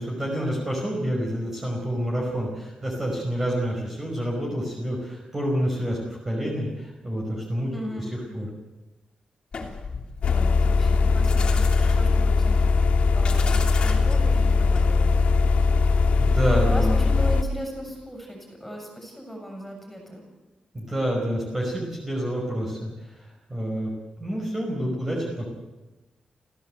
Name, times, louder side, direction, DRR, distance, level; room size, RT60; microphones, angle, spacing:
voice 1, 0.0-7.7 8.3-8.5 16.2-17.0 20.7-22.9 23.5-23.9 24.2-25.5, equal, 15° right, -2 dB, 5.7 m, -28 dB
voice 2, 7.7-8.1 10.3-15.3 16.1-16.4 16.6-20.2, equal, 5° left, 2 dB, 7.0 m, -37 dB
sound 1, 9.5-15.2, left 4 dB, 45° left, 3.2 m, -35 dB
sound 2, 10.2-17.4, left 4 dB, 85° left, 1.6 m, -20 dB
29.0 x 15.5 x 8.1 m, 1.1 s
wide cardioid pair, 155°, 2 cm